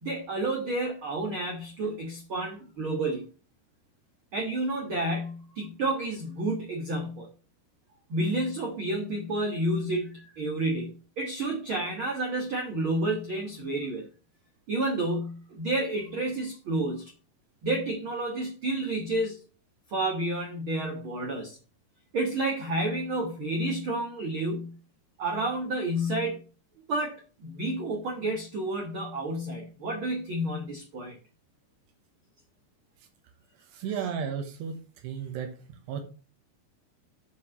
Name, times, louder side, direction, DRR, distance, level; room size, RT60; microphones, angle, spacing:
voice 1, 0.0-3.3 4.3-7.3 8.1-14.1 14.7-17.1 17.6-19.4 19.9-21.6 22.1-24.7 25.2-26.4 26.9-31.1, right 1 dB, 70° right, 1 dB, 1.2 m, -30 dB
voice 2, 33.7-35.6 35.9-36.0, right 7 dB, 90° right, 5 dB, 3.3 m, -34 dB
8.4 x 4.8 x 7.0 m, 0.35 s
omnidirectional pair, 4.8 m